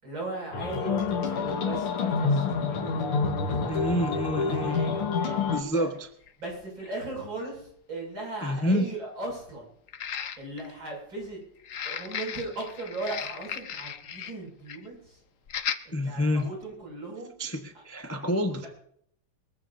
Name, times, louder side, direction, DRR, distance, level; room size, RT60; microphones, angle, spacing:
voice 1, 0.0-5.9 6.4-9.7 10.4-11.4 11.8-15.2 15.8-17.3 17.7-17.8 18.2-18.3, right 2 dB, 60° right, -1 dB, 7.4 m, -38 dB
sound 1, 0.5-5.6, left 5 dB, 80° left, 2.3 m, -28 dB
voice 2, 3.7-4.8 5.3-6.1 8.4-8.9 15.9-16.5 17.4-18.7, equal, 15° left, 5 dB, 0.6 m, -28 dB
sound 2, 5.2-5.3 6.3-6.4 6.8-6.9 9.9-10.7 11.6-14.4 14.7-14.9 15.5-15.8 16.4-16.5, left 8 dB, 60° left, 0.8 m, -36 dB
23.0 x 15.0 x 2.7 m, 0.65 s
omnidirectional pair, 2.4 m